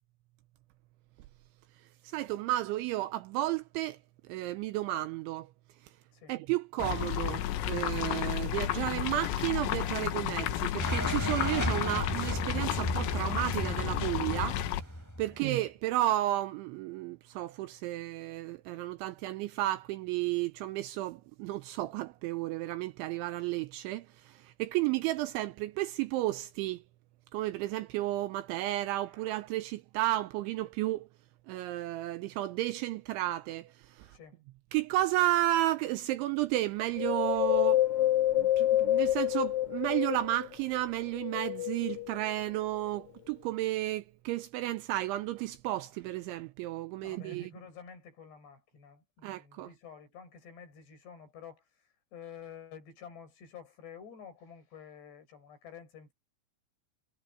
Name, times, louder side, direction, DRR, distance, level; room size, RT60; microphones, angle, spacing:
voice 1, 2.0-4.0 4.3-5.5 6.3-14.6 15.2-26.8 27.3-31.1 31.5-34.1 34.7-47.5 49.2-49.7, right 15 dB, 85° right, 2.8 m, -32 dB
sound 1, 6.8-14.8, left 12 dB, 80° left, 3.9 m, -32 dB
sound 2, 10.8-15.5, equal, 5° left, 7.5 m, -34 dB
voice 2, 34.0-34.4 47.0-51.6 52.1-56.1, left 7 dB, 55° left, 8.4 m, -50 dB
Wind, 37.0-40.5 41.1-42.3 42.9-43.0, left 14 dB, 35° left, 2.9 m, -28 dB
omnidirectional pair, 5.9 m